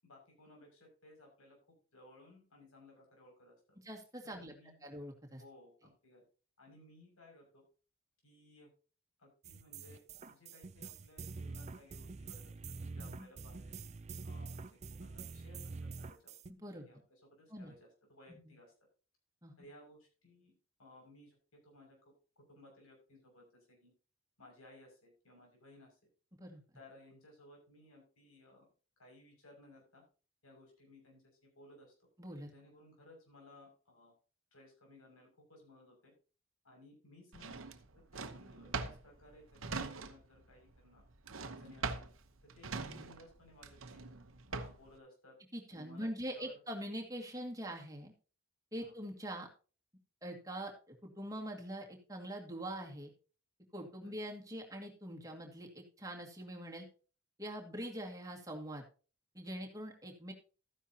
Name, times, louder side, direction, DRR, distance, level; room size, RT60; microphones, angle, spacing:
voice 1, 0.0-1.6 1.9-3.5 4.2-4.9 5.4-6.2 6.6-7.6 8.2-8.7 9.2-10.0 10.3-12.5 12.8-13.7 14.2-16.3 16.9-18.7 19.6-20.5 20.8-21.4 21.6-22.0 22.5-23.9 24.4-26.0 26.7-28.6 29.0-30.0 30.4-32.1 32.5-34.1 34.5-36.1 36.6-37.6 38.1-41.0 41.4-42.1 42.5-44.0 44.5-45.3 45.7-46.5 48.8-48.9 54.0-54.1, left 1 dB, 90° left, 1 dB, 6.4 m, -60 dB
voice 2, 3.8-4.5 4.8-5.4 13.0-13.3 16.5-16.9 17.5-17.7 18.3-18.6 19.4-19.5 26.4-26.6 32.2-32.5 42.8-43.1 45.5-48.1 48.7-49.5 50.2-53.1 53.7-56.9 57.4-58.8 59.3-60.3, right 1 dB, 15° right, 0 dB, 2.1 m, -44 dB
sound 1, 9.4-16.5, right 4 dB, 30° right, 0.5 m, -46 dB
Drawer open or close, 37.3-40.4 40.7-45.0, right 4 dB, 70° right, 1.0 m, -42 dB
13.5 x 10.0 x 2.9 m, 0.37 s
head